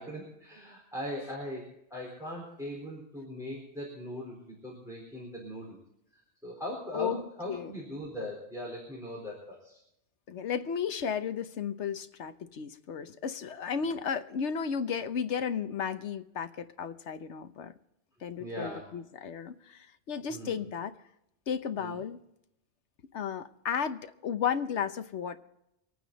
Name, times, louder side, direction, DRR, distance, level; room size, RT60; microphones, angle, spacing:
voice 1, 0.0-5.8 6.4-9.8 18.4-18.9 20.3-20.6 21.8-22.0, left 1 dB, 5° right, -4 dB, 4.1 m, -40 dB
voice 2, 6.9-7.7 10.3-17.7 18.2-20.9 21.5-22.2 23.1-25.4, left 7 dB, 85° left, 9 dB, 1.2 m, -34 dB
25.5 x 9.3 x 4.0 m, 0.80 s
omnidirectional pair, 1.2 m